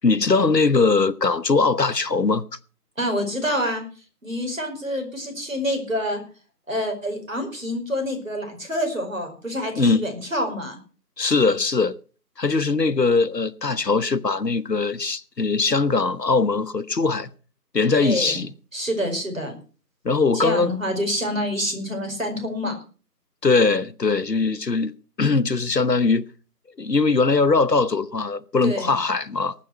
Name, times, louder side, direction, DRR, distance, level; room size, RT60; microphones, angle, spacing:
voice 1, 0.0-2.4 9.8-10.1 11.2-12.0 12.4-17.3 17.7-18.5 20.0-20.7 23.4-26.3 26.8-29.5, left 4 dB, 80° left, 1.1 m, -21 dB
voice 2, 3.0-3.8 4.2-6.2 6.7-10.8 17.9-18.4 18.7-19.5 20.3-22.7 28.6-28.9, equal, 50° right, 5.1 m, -27 dB
19.0 x 7.4 x 5.8 m
figure-of-eight pair, 175°, 49 cm